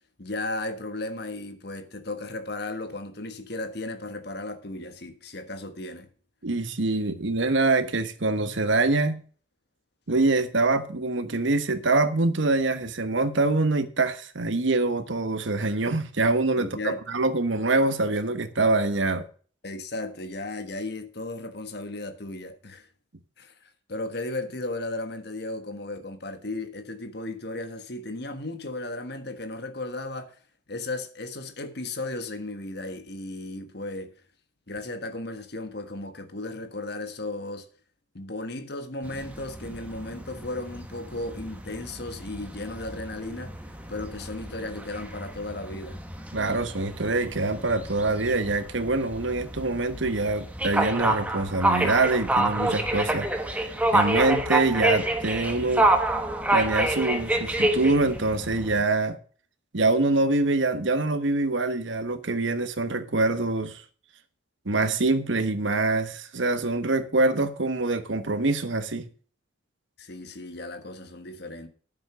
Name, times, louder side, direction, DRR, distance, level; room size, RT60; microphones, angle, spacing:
voice 1, 0.2-6.1 16.6-17.0 19.6-22.9 23.4-30.4 30.7-34.1 34.7-37.6 38.1-43.6 43.9-46.0 70.0-71.7, left 2 dB, 55° left, 1.5 m, -35 dB
voice 2, 6.4-9.2 10.1-19.3 46.3-53.3 53.5-55.9 56.5-59.2 59.7-63.8 64.6-69.1, right 2 dB, 70° right, 1.2 m, -25 dB
sound 1, 39.0-58.8, right 1 dB, 5° right, 1.2 m, -28 dB
9.8 x 7.2 x 6.1 m
head